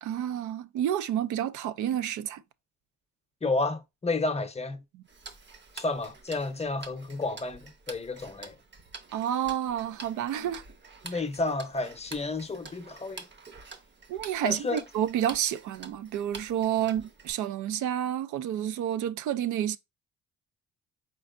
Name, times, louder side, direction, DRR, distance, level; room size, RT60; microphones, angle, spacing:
voice 1, 0.0-2.4 9.1-10.6 11.1-11.2 14.1-19.8, right 10 dB, 75° right, 0.5 m, -30 dB
voice 2, 3.4-4.8 5.7-8.6 11.0-13.3 14.4-14.8, left 3 dB, 20° left, 0.7 m, -31 dB
Tick-tock, 5.1-17.3, right 4 dB, 40° right, 0.8 m, -48 dB
4.5 x 4.3 x 2.5 m
cardioid pair, 90°, 30 cm